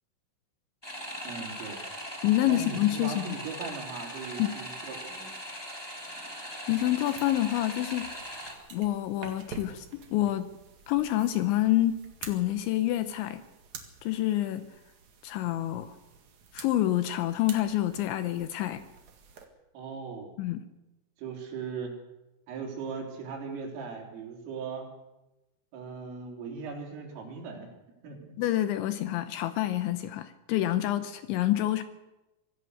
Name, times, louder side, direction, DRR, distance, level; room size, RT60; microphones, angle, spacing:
sound 1, 0.8-8.5, equal, 10° left, 1.8 m, -40 dB
voice 1, 1.2-1.8 2.5-5.3 19.7-20.3 21.2-21.9 22.5-24.9 25.7-27.7 28.0-28.3, right 5 dB, 75° right, 0 dB, 6.2 m, -39 dB
voice 2, 2.2-3.4 4.4-4.5 6.7-8.1 8.7-10.5 10.9-13.4 14.0-14.7 15.2-15.9 16.5-18.9 20.4-20.6 28.4-31.8, left 14 dB, 75° left, 10 dB, 2.9 m, -27 dB
sound 2, 6.7-19.5, right 6 dB, 55° right, 2.2 m, -49 dB
25.0 x 16.0 x 6.6 m, 1.0 s
omnidirectional pair, 5.9 m